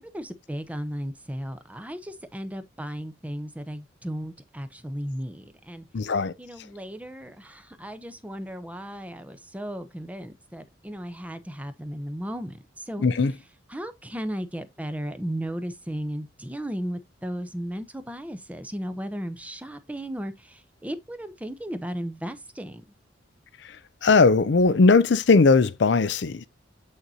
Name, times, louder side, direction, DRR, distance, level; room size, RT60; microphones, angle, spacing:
voice 1, 0.0-5.8 6.4-13.0 13.7-22.8, equal, 10° right, 0.8 m, -35 dB
voice 2, 5.9-6.3 13.0-13.3 24.0-26.5, left 4 dB, 65° left, 0.5 m, -19 dB
7.6 x 6.5 x 2.7 m
head